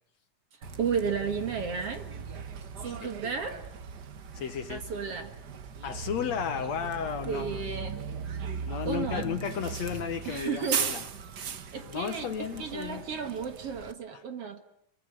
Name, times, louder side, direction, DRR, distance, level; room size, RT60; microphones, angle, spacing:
Bus, 0.6-13.9, right 6 dB, 85° right, 0.9 m, -38 dB
voice 1, 0.8-2.0 2.8-3.6 4.7-5.3 7.3-8.0 8.9-9.3 10.3-10.8 11.7-12.3 12.6-14.6, right 6 dB, 50° right, 8 dB, 2.3 m, -33 dB
voice 2, 4.3-4.8 5.8-7.6 8.7-11.0 11.8-13.0 14.1-14.2, left 8 dB, 65° left, 9 dB, 2.1 m, -34 dB
27.0 x 23.0 x 7.9 m, 0.74 s
omnidirectional pair, 3.9 m